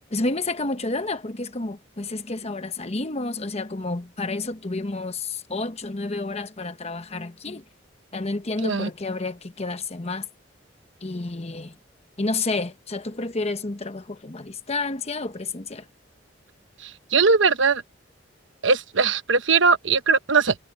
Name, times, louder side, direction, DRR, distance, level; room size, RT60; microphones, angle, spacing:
voice 1, 0.1-7.6 8.1-10.3 11.0-11.8 12.2-15.9, left 3 dB, 35° left, 1.1 m, -30 dB
voice 2, 16.8-17.8 18.6-20.5, right 5 dB, 85° right, 1.1 m, -20 dB
head